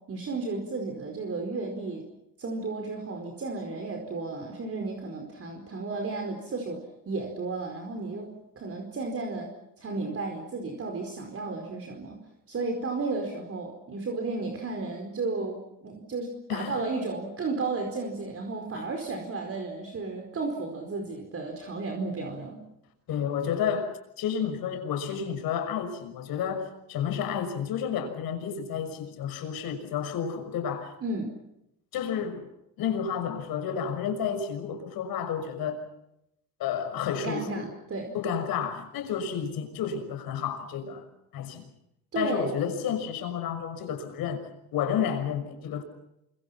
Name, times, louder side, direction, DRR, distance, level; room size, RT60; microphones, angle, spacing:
voice 1, 0.1-2.1 2.4-8.3 8.6-9.5 9.8-12.2 12.5-22.6 31.0-31.3 37.1-38.1 42.1-42.5, right 3 dB, 40° right, 4.7 m, -33 dB
voice 2, 16.5-16.8 18.7-18.9 23.1-30.9 31.9-32.5 32.8-35.8 36.6-37.7 38.1-41.0 41.3-41.6 42.1-45.8, left 7 dB, 70° left, 6.2 m, -31 dB
28.5 x 25.0 x 5.9 m
cardioid pair, 105°, 37 cm